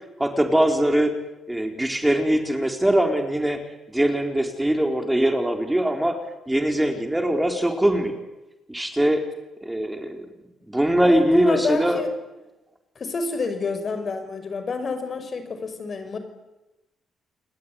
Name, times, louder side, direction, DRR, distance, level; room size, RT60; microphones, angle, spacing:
voice 1, 0.2-1.1 1.5-3.6 3.9-6.2 6.5-8.2 8.7-9.2 9.6-10.2 10.7-12.0, right 1 dB, 10° right, 5 dB, 4.2 m, -22 dB
voice 2, 11.0-12.1 13.0-16.2, left 4 dB, 45° left, 9 dB, 5.8 m, -28 dB
29.5 x 20.0 x 9.7 m, 1.0 s
cardioid pair, 90°, 0 cm